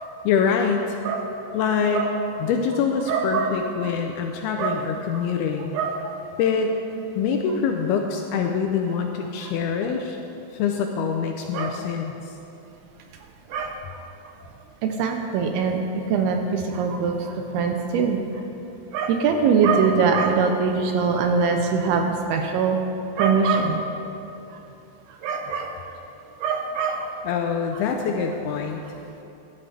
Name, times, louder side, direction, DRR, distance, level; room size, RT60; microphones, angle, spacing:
voice 1, 0.2-1.0 1.5-2.1 2.4-5.7 6.4-6.7 7.2-10.2 10.5-12.4 27.2-28.8, left 6 dB, 80° left, 3 dB, 2.3 m, -25 dB
voice 2, 3.1-3.5 3.8-3.9 4.6-4.8 5.1-5.3 5.7-6.1 11.5-11.8 13.5-13.7 14.8-15.8 16.1-18.2 18.9-22.8 23.2-23.8 25.2-25.9 26.4-27.1, right 5 dB, 80° right, 4 dB, 2.4 m, -23 dB
15.0 x 11.0 x 3.3 m, 2.9 s
omnidirectional pair, 4.9 m